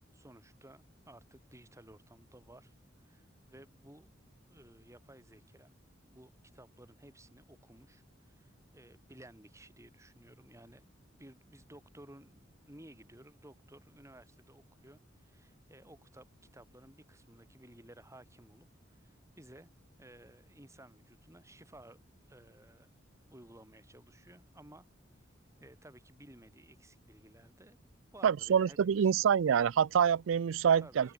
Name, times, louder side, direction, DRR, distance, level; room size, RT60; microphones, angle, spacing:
voice 1, 0.1-2.7 3.0-4.1 4.5-5.7 6.0-10.8 11.2-16.3 16.5-19.7 20.0-22.0 22.3-22.9 23.3-24.9 25.6-27.8 28.1-29.2 30.8-31.1, right 1 dB, 15° right, 5.5 m, -56 dB
voice 2, 28.2-31.1, right 7 dB, 80° right, 0.4 m, -26 dB
open air
head